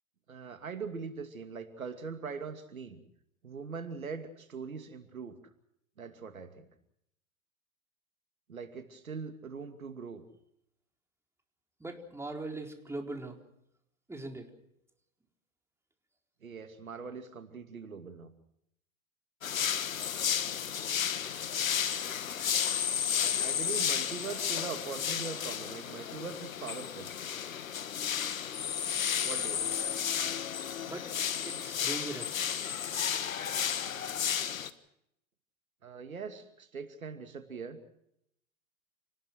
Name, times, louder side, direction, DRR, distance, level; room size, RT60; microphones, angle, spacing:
voice 1, 0.3-3.0 3.4-5.4 6.0-6.7 8.5-10.3 16.4-18.3 23.4-27.1 29.2-29.8 35.8-37.8, right 5 dB, 85° right, 8 dB, 2.6 m, -41 dB
voice 2, 11.8-13.4 14.1-14.5 30.8-31.1 31.4-32.4, right 2 dB, 5° right, 3 dB, 4.3 m, -40 dB
sound 1, 19.4-34.7, left 8 dB, 80° left, 1.6 m, -32 dB
28.5 x 20.0 x 6.2 m, 0.75 s
hypercardioid pair, 95°, 40 cm